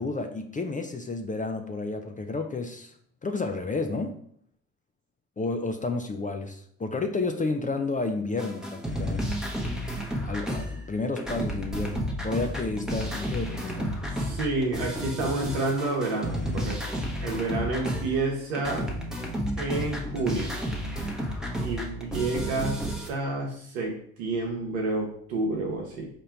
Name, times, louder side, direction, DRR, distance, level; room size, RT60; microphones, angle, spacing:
voice 1, 0.0-2.9 3.2-4.2 5.4-9.3 10.2-13.9, left 3 dB, 20° left, 6 dB, 0.4 m, -31 dB
sound 1, 8.4-10.9 11.2-18.3 18.5-23.1, equal, ahead, 0.9 m, -32 dB
voice 2, 14.1-18.8 19.6-20.5 21.6-22.8 23.1-23.9 24.2-26.1, right 3 dB, 85° right, -1 dB, 0.8 m, -29 dB
4.2 x 2.6 x 4.4 m, 0.65 s
supercardioid pair, 65°, 40 cm